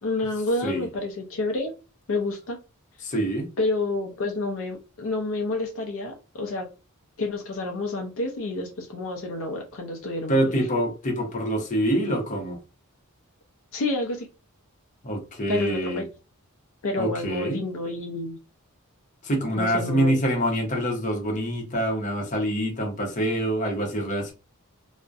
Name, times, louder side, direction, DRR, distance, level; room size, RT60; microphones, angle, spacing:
voice 1, 0.0-1.7 2.1-2.6 3.6-6.7 7.2-10.7 13.7-14.3 15.5-16.1 16.8-18.4 19.6-20.2, left 2 dB, 65° left, 0.5 m, -29 dB
voice 2, 3.0-3.5 10.3-12.6 15.0-16.0 17.0-17.6 19.2-24.3, right 1 dB, 35° left, 0.7 m, -25 dB
2.6 x 2.0 x 2.3 m
head